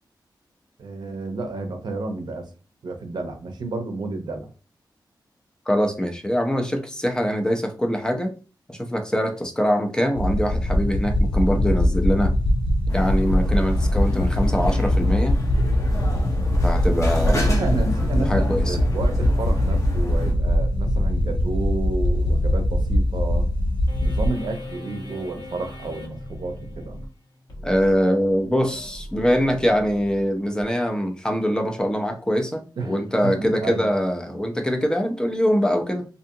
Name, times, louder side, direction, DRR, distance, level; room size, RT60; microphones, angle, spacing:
voice 1, 0.8-2.5 2.8-4.5 17.2-23.5 24.0-27.0 32.8-33.9, right 3 dB, 70° right, 5 dB, 0.6 m, -31 dB
voice 2, 5.7-8.3 8.7-12.3 12.9-15.4 16.6-17.6 18.2-18.8 27.6-36.1, equal, 10° left, 4 dB, 0.5 m, -23 dB
sound 1, 10.1-24.3, left 1 dB, 90° left, 0.4 m, -21 dB
sound 2, 12.9-20.3, left 2 dB, 40° left, 0.7 m, -32 dB
sound 3, 23.9-30.6, left 1 dB, 70° left, 1.1 m, -39 dB
2.6 x 2.4 x 2.7 m, 0.35 s
wide cardioid pair, 115°, 8 cm